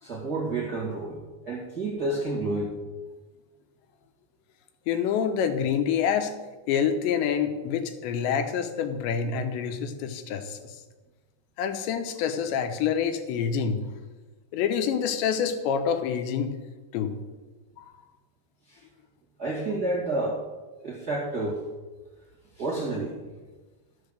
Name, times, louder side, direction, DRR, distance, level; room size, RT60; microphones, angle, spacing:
voice 1, 0.0-1.2 1.4-2.8 18.7-18.8 19.4-20.5 20.8-21.6 22.6-23.1, right 2 dB, 35° right, -5 dB, 1.7 m, -29 dB
voice 2, 4.9-6.3 6.7-10.8 11.6-13.8 14.5-16.6 16.9-17.2 17.8-17.9, left 7 dB, 85° left, 7 dB, 3.2 m, -27 dB
13.0 x 7.2 x 6.6 m, 1.2 s
omnidirectional pair, 5.0 m